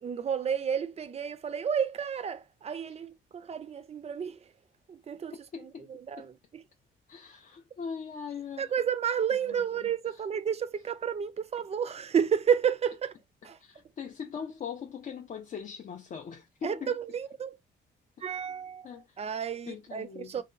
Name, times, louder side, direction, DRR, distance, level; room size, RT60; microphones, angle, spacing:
voice 1, 0.0-4.4 4.9-5.3 5.6-6.6 8.6-13.1 13.4-13.6 16.6-17.6 18.2-20.4, right 8 dB, 35° right, 0.3 m, -31 dB
voice 2, 5.5-5.9 6.2-6.3 7.1-8.7 9.4-9.6 10.1-10.2 13.6-17.0 18.3-18.4 18.8-19.2 19.7-20.4, left 6 dB, 40° left, 0.4 m, -41 dB
2.7 x 2.2 x 2.4 m
cardioid pair, 90°, 20 cm